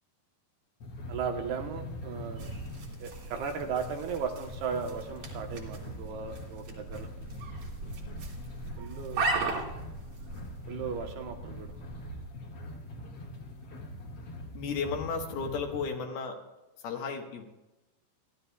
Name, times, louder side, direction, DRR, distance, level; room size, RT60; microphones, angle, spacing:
sound 1, 0.8-15.8, equal, 50° left, 1.9 m, -43 dB
voice 1, 1.1-2.5 3.0-7.1 8.8-9.3 10.7-11.7, right 6 dB, 75° right, 4 dB, 2.8 m, -36 dB
sound 2, 2.3-12.3, right 3 dB, 55° right, 3.3 m, -38 dB
voice 2, 14.5-16.4 16.8-17.4, left 5 dB, 70° left, 2 dB, 3.0 m, -34 dB
29.0 x 12.0 x 2.3 m, 1.0 s
omnidirectional pair, 5.0 m